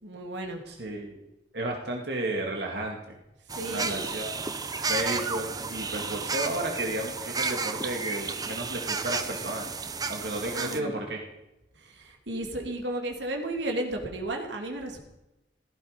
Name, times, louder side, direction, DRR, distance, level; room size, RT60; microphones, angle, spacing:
voice 1, 0.0-0.6 3.5-4.0 10.5-11.0 11.7-15.0, right 1 dB, 85° right, 2 dB, 2.7 m, -33 dB
voice 2, 0.7-1.2 1.5-3.0 3.7-4.5 4.9-9.7 10.1-11.2, right 1 dB, 65° right, 0 dB, 2.3 m, -33 dB
sound 1, 3.5-10.8, right 4 dB, 20° right, 0.9 m, -32 dB
16.5 x 15.0 x 5.2 m, 0.95 s
head